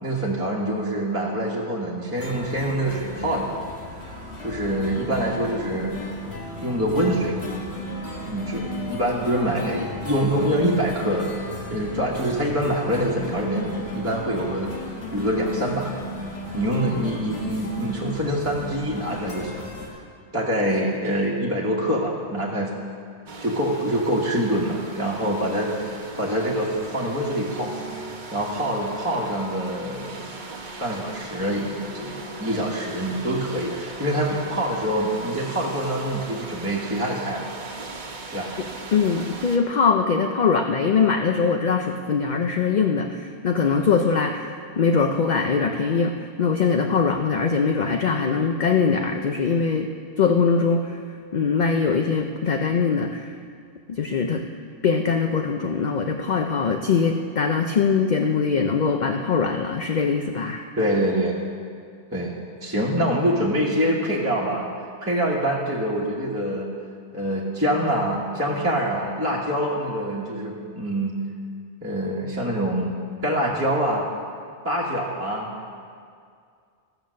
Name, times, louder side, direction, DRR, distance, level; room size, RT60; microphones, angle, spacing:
voice 1, 0.0-3.6 4.4-5.9 6.6-7.4 8.2-11.3 11.7-14.7 15.1-15.9 16.5-19.7 20.3-22.7 23.4-27.7 28.3-30.4 30.8-37.5 38.3-38.5 60.8-61.4 62.1-64.7 65.0-66.7 67.1-71.2 71.8-73.0 73.2-74.1 74.6-75.5, right 1 dB, 15° right, -5 dB, 1.3 m, -25 dB
sound 1, 2.1-19.9, left 1 dB, 65° left, 1.8 m, -35 dB
sound 2, 23.3-39.6, right 3 dB, 45° right, 1.0 m, -38 dB
voice 2, 38.9-49.9 50.2-51.0 51.3-53.3 53.9-54.4 54.8-60.6, left 5 dB, 50° left, 4 dB, 0.6 m, -22 dB
14.5 x 7.0 x 6.4 m, 2.2 s
omnidirectional pair, 1.1 m